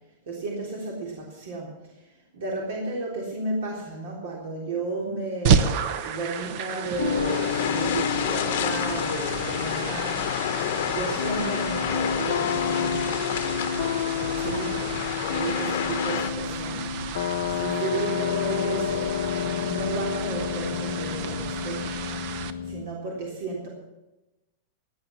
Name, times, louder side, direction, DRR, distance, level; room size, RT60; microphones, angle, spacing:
voice 1, 0.3-1.7 2.0-2.1 2.3-13.1 14.1-21.9 22.6-23.7, right 3 dB, 70° right, -1 dB, 3.7 m, -33 dB
sound 1, 5.4-22.5, right 6 dB, 45° right, 1.0 m, -32 dB
sound 2, 6.9-16.3, left 12 dB, 60° left, 0.9 m, -30 dB
sound 3, 7.0-22.8, left 8 dB, 90° left, 0.8 m, -30 dB
16.5 x 9.0 x 7.1 m, 1.0 s
supercardioid pair, 165°, 0 cm